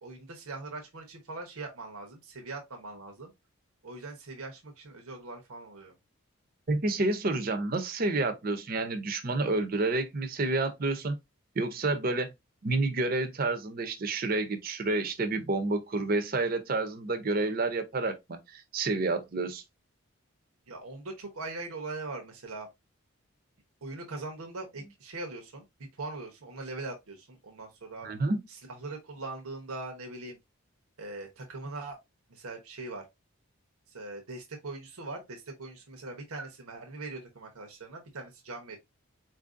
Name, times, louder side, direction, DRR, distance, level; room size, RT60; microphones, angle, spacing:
voice 1, 0.0-3.3 3.8-5.9 20.7-22.7 23.8-25.6 26.0-28.1 28.5-30.4 31.0-32.0 32.3-33.1 33.9-38.8, right 3 dB, 85° right, 0.9 m, -41 dB
voice 2, 6.7-11.2 11.6-12.3 12.6-19.6 28.0-28.4, right 2 dB, 40° right, 0.6 m, -29 dB
4.3 x 2.6 x 2.4 m
head